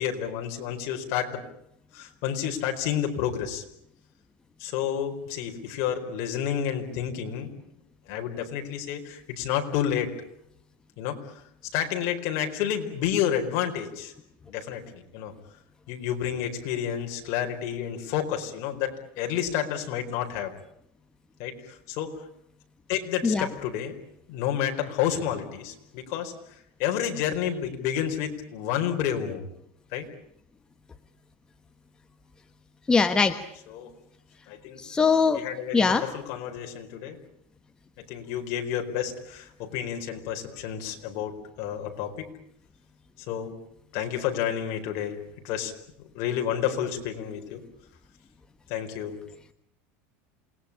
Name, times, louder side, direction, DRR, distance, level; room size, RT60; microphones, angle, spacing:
voice 1, 0.0-1.5 1.9-3.6 4.6-7.7 8.1-10.2 11.0-11.4 11.7-14.1 14.5-15.3 15.9-20.5 21.4-22.3 22.9-24.0 24.3-26.3 26.8-29.4 29.9-30.1 33.7-33.9 34.5-34.8 35.3-37.2 38.0-42.3 43.3-43.6 43.9-45.2 45.4-45.7 46.1-47.6 48.7-49.2, left 9 dB, 55° left, 4 dB, 4.5 m, -30 dB
voice 2, 32.9-33.3 34.8-35.4 35.7-36.0, left 4 dB, 10° left, 7 dB, 1.1 m, -21 dB
28.0 x 20.5 x 8.7 m, 0.73 s
supercardioid pair, 155°, 7 cm